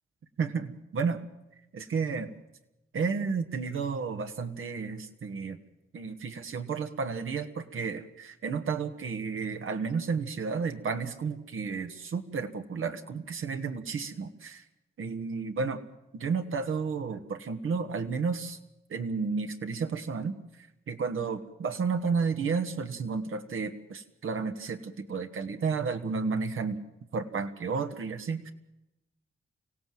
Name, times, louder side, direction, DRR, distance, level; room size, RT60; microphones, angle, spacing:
voice 1, 0.4-1.2 1.7-2.3 2.9-5.6 5.9-14.6 15.0-15.8 16.1-18.6 18.9-26.8 27.1-28.5, right 5 dB, 75° right, 7 dB, 1.6 m, -32 dB
25.0 x 16.5 x 7.8 m, 0.94 s
cardioid pair, 90°, 21 cm